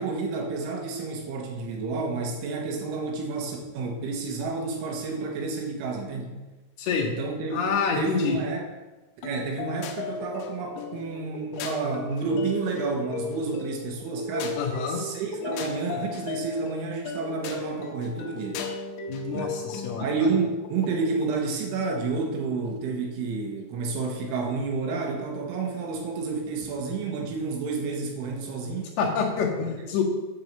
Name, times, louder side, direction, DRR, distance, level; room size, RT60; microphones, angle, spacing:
voice 1, 0.0-6.3 7.0-8.7 9.2-14.6 14.9-18.7 19.3-19.7 20.0-29.0 29.8-29.9, right 4 dB, 75° right, 1 dB, 3.9 m, -30 dB
voice 2, 7.5-8.4 14.6-15.0 19.1-20.3 29.0-30.0, left 6 dB, 60° left, -3 dB, 3.5 m, -27 dB
sound 1, 9.2-21.4, left 5 dB, 85° left, 3.5 m, -36 dB
10.5 x 4.8 x 7.5 m, 1.1 s
omnidirectional pair, 5.8 m